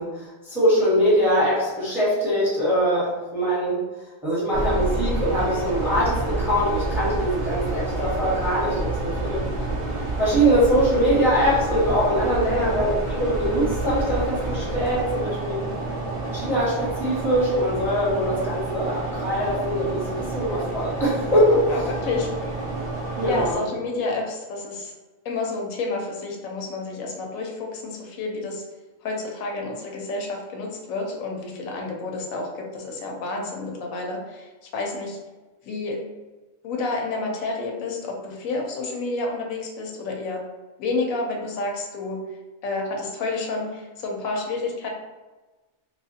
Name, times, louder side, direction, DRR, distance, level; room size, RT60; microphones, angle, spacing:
voice 1, 0.0-3.8 4.2-9.4 10.2-15.6 16.3-21.7 23.2-23.6, equal, ahead, -7 dB, 0.9 m, -22 dB
sound 1, 4.5-23.6, right 2 dB, 45° right, 0.4 m, -28 dB
voice 2, 12.5-12.8 21.7-22.5 23.3-24.9 25.2-28.6 29.0-35.2 35.6-36.0 36.6-40.4 40.8-42.2 42.6-44.9, left 3 dB, 90° left, 0 dB, 1.0 m, -29 dB
2.9 x 2.4 x 2.6 m, 1.2 s
omnidirectional pair, 1.4 m